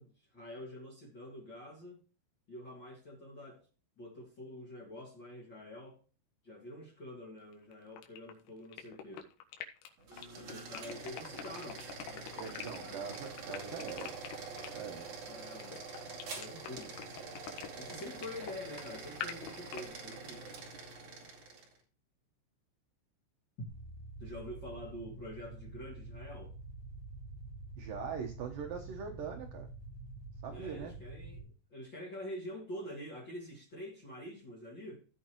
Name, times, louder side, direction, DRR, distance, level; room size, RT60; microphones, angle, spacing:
voice 1, 0.0-2.0 2.5-3.7 4.0-6.0 6.4-9.3 10.3-13.0 15.3-15.8 16.2-17.0 17.8-20.5 24.2-26.6 30.5-35.1, left 1 dB, 60° left, 1.2 m, -47 dB
sound 1, 7.4-19.8, left 9 dB, 85° left, 4.1 m, -45 dB
sound 2, 10.0-21.8, right 4 dB, 45° right, 3.0 m, -46 dB
voice 2, 12.4-14.1 14.7-15.1 27.8-29.7 30.4-30.9, right 6 dB, 75° right, 2.1 m, -42 dB
sound 3, 23.7-31.4, right 2 dB, 25° right, 5.0 m, -47 dB
16.5 x 6.2 x 3.0 m
omnidirectional pair, 5.8 m